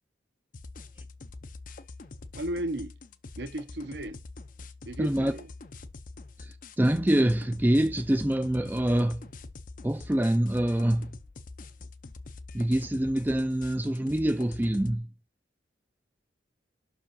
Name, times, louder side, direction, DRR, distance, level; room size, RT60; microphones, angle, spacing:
sound 1, 0.5-15.0, left 3 dB, 45° left, 0.6 m, -45 dB
voice 1, 2.3-2.9 3.4-4.2 4.9-5.5, right 1 dB, 65° right, 0.9 m, -34 dB
voice 2, 5.0-5.3 6.4-9.2 9.8-11.1 12.5-15.1, right 1 dB, 10° right, 0.4 m, -25 dB
6.1 x 4.8 x 5.4 m
head